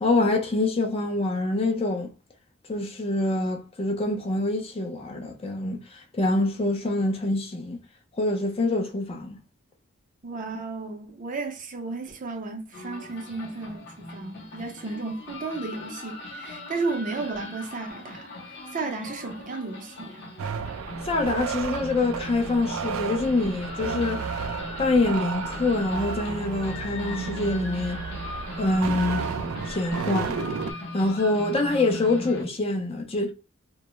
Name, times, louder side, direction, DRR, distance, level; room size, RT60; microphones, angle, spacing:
voice 1, 0.0-2.1 2.7-7.8 8.2-9.4 21.0-24.3 24.8-28.0 28.6-29.2 29.7-30.4 30.9-33.3, left 2 dB, 30° left, 0.4 m, -25 dB
voice 2, 10.2-18.3 18.7-20.3, right 3 dB, 40° right, 0.6 m, -33 dB
sound 1, 12.7-32.4, left 2 dB, 55° left, 0.8 m, -39 dB
sound 2, 20.4-30.7, right 6 dB, 90° right, 0.3 m, -33 dB
2.2 x 2.0 x 2.9 m
head